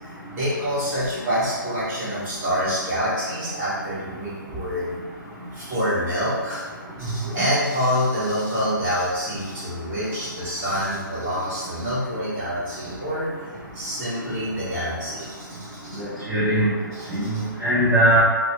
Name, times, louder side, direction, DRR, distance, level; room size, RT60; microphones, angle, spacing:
voice 1, 0.0-4.9 5.5-6.7 7.0-13.3 13.7-16.0 16.9-17.4, equal, 25° right, -11 dB, 1.4 m, -27 dB
voice 2, 16.0-16.7 17.1-18.2, right 1 dB, 10° right, -12 dB, 0.4 m, -20 dB
3.0 x 2.1 x 2.8 m, 1.4 s
hypercardioid pair, 155°, 11 cm